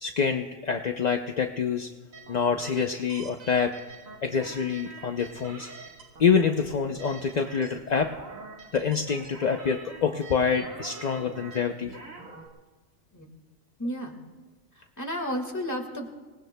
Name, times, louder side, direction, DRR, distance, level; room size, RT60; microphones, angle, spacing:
voice 1, 0.0-1.9 2.3-3.7 4.2-5.7 6.2-8.1 8.7-12.0, left 6 dB, 45° left, 5 dB, 0.6 m, -26 dB
sound 1, 2.1-12.5, right 4 dB, 85° right, 2.0 m, -45 dB
voice 2, 13.8-14.2 15.0-16.1, equal, 15° left, 2 dB, 1.7 m, -32 dB
26.5 x 19.0 x 2.2 m, 1.3 s
omnidirectional pair, 1.4 m